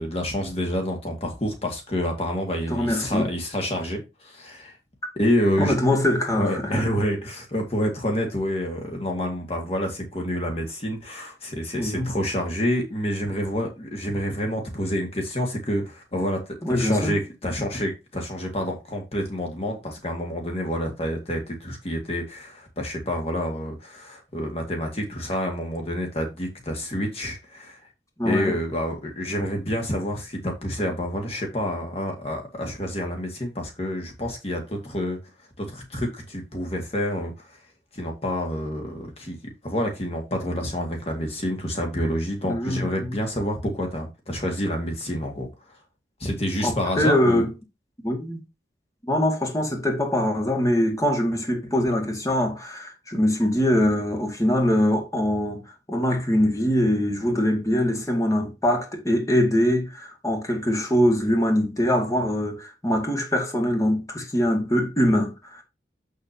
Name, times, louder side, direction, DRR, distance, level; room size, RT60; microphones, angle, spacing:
voice 1, 0.0-4.8 5.1-5.8 6.3-27.8 28.2-35.2 35.6-37.6 37.9-39.4 39.6-45.5 46.2-47.5, equal, 35° left, 1.8 m, -28 dB
voice 2, 2.7-3.3 5.6-6.9 11.8-12.1 16.6-17.1 28.2-28.5 42.5-43.1 46.6-47.5 48.0-48.4 49.0-55.6 55.9-65.6, equal, 20° left, 1.9 m, -23 dB
7.6 x 6.8 x 2.8 m
head